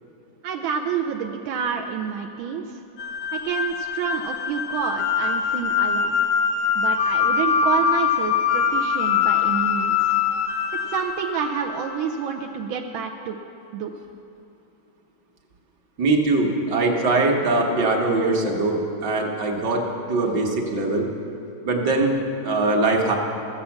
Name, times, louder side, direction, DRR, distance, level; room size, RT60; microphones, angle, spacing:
voice 1, 0.4-2.8 3.3-6.2 6.7-10.1 10.9-13.4 13.7-14.0, right 7 dB, 85° right, 3 dB, 1.4 m, -28 dB
sound 1, 3.0-12.2, left 7 dB, 90° left, 1.7 m, -23 dB
voice 2, 16.0-19.8 20.1-21.1 21.6-23.2, right 2 dB, 65° right, 1 dB, 1.9 m, -22 dB
14.5 x 7.5 x 7.1 m, 2.8 s
omnidirectional pair, 2.1 m